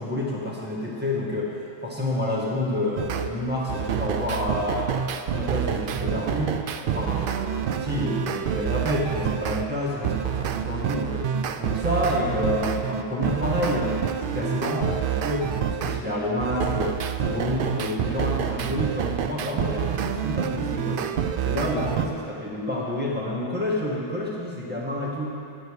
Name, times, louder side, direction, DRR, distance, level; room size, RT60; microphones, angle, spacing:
voice 1, 0.0-1.6 1.8-4.9 5.3-6.6 6.8-11.3 11.6-21.2 21.4-25.3, left 1 dB, 10° right, -6 dB, 1.9 m, -28 dB
sound 1, 3.0-3.3 3.7-9.6 10.0-16.0 16.4-22.1, right 8 dB, 60° right, 0.6 m, -28 dB
11.0 x 9.3 x 4.9 m, 2.5 s
omnidirectional pair, 1.2 m